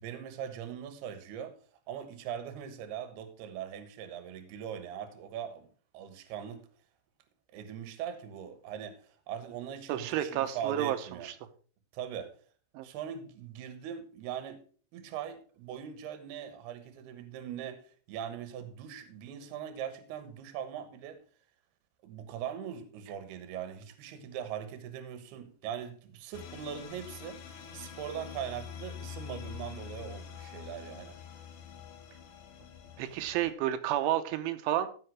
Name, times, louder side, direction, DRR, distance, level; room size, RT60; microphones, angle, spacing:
voice 1, 0.0-1.5 1.9-5.7 5.9-6.7 7.5-11.3 11.9-12.3 12.8-14.6 14.9-17.8 18.1-21.2 22.0-31.2 33.2-33.3, right 9 dB, 70° right, 3.0 m, -41 dB
voice 2, 9.9-11.0 11.2-11.3 12.7-12.9 33.0-34.9, right 12 dB, 85° right, 3.3 m, -30 dB
sound 1, 26.3-33.5, left 8 dB, 70° left, 3.3 m, -45 dB
14.5 x 5.8 x 4.6 m
omnidirectional pair, 5.4 m